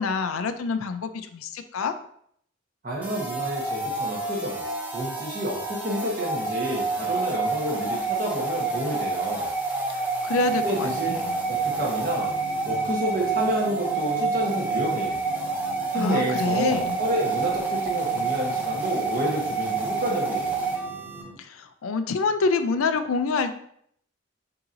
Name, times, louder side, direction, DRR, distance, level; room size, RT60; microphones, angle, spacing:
voice 1, 0.0-1.9 10.2-10.9 11.3-11.4 15.9-17.0 21.4-23.6, left 4 dB, 90° left, 9 dB, 0.4 m, -26 dB
voice 2, 2.8-4.6 4.9-9.5 10.6-11.1 11.5-12.3 12.6-15.2 15.9-20.6, equal, 40° right, -2 dB, 1.2 m, -29 dB
sound 1, 3.0-21.2, right 4 dB, 10° right, 0.6 m, -28 dB
sound 2, 10.3-21.4, right 3 dB, 65° right, 1.4 m, -43 dB
6.6 x 2.9 x 2.6 m, 0.67 s
head